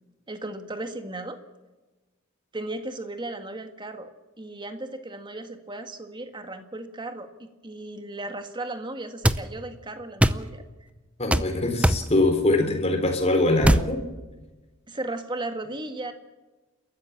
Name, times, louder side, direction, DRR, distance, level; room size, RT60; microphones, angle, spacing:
voice 1, 0.3-1.4 2.5-4.1 4.4-10.6 14.9-16.1, right 2 dB, 20° right, 7 dB, 1.8 m, -35 dB
sound 1, 9.2-9.4 10.2-10.4 11.3-11.5 11.8-12.1 13.6-13.9, right 1 dB, 5° right, 0.6 m, -19 dB
voice 2, 11.2-14.0, left 2 dB, 30° left, 5 dB, 3.9 m, -23 dB
30.0 x 14.0 x 7.3 m, 1.2 s
head